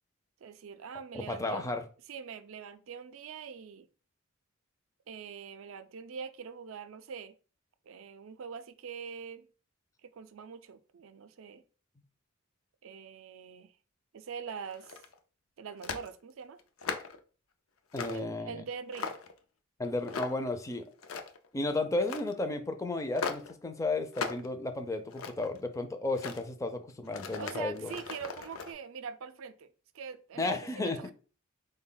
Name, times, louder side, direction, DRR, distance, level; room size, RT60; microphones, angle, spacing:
voice 1, 0.4-1.7 2.1-3.9 5.1-7.4 7.9-9.5 10.0-11.6 12.8-13.7 14.1-15.0 15.6-16.6 18.1-19.2 27.4-29.7 29.9-31.1, right 6 dB, 75° right, 0.4 m, -43 dB
voice 2, 1.1-1.8 17.9-18.6 19.8-20.8 21.5-27.9 30.4-31.0, left 2 dB, 15° left, 0.4 m, -33 dB
sound 1, 14.7-15.2 15.8-16.1 16.6-17.2 17.9-18.3 18.7-19.4 20.1-20.5 20.9-21.5 22.0-22.3 23.2-23.5 24.1-24.5 24.9-25.6 26.1-26.4 27.1-28.7, left 5 dB, 85° left, 0.5 m, -38 dB
4.1 x 2.2 x 3.8 m
head